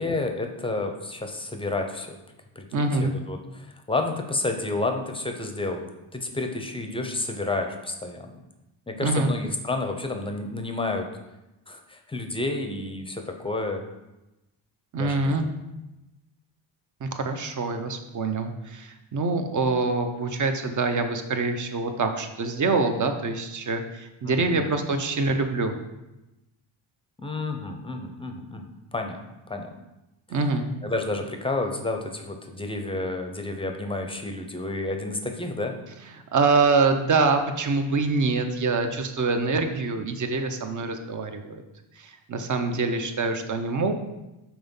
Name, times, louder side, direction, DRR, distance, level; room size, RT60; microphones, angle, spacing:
voice 1, 0.0-2.2 2.6-5.8 6.1-8.3 8.9-11.1 11.7-13.8 15.0-15.5 24.2-24.7 27.2-28.6 28.9-29.2 29.5-29.7 30.8-35.7, left 2 dB, 10° left, 4 dB, 0.6 m, -30 dB
voice 2, 2.7-3.1 9.0-9.3 14.9-15.5 17.0-25.7 30.3-30.7 36.3-41.6 42.0-43.9, right 3 dB, 40° right, 6 dB, 0.7 m, -25 dB
6.0 x 4.3 x 5.4 m, 0.98 s
cardioid pair, 140°, 49 cm